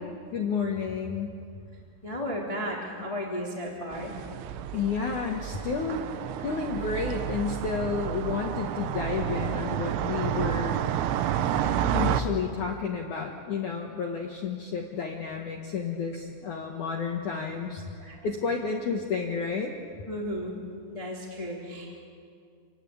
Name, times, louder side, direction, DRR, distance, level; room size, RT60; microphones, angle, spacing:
voice 1, 0.3-1.4 4.7-6.0 6.4-10.8 11.9-17.8 18.2-19.7, left 5 dB, 65° left, 1 dB, 2.0 m, -31 dB
voice 2, 2.0-4.1 18.0-18.3 20.1-20.5 20.9-21.9, equal, 10° left, -2 dB, 2.4 m, -34 dB
sound 1, 3.9-12.2, right 10 dB, 90° right, 3.5 m, -30 dB
28.5 x 20.0 x 8.6 m, 2.4 s
omnidirectional pair, 5.6 m